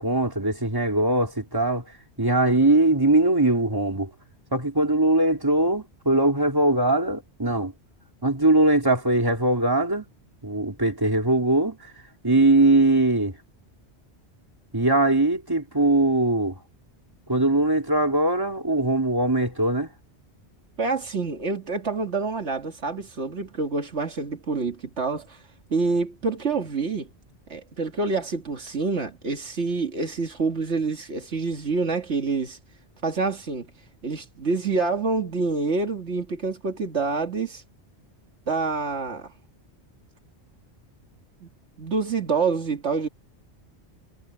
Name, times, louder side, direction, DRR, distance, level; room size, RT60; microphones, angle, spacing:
voice 1, 0.0-1.8 2.2-4.1 4.5-7.7 8.2-10.0 10.4-11.8 12.2-13.3 14.7-16.5 17.3-19.9, right 2 dB, 20° right, 3.1 m, -21 dB
voice 2, 20.8-25.4 25.7-27.1 27.5-32.6 33.0-33.7 34.0-37.6 38.5-39.3 41.4-41.5 41.8-43.1, right 4 dB, 80° right, 2.2 m, -27 dB
omnidirectional pair, 1.2 m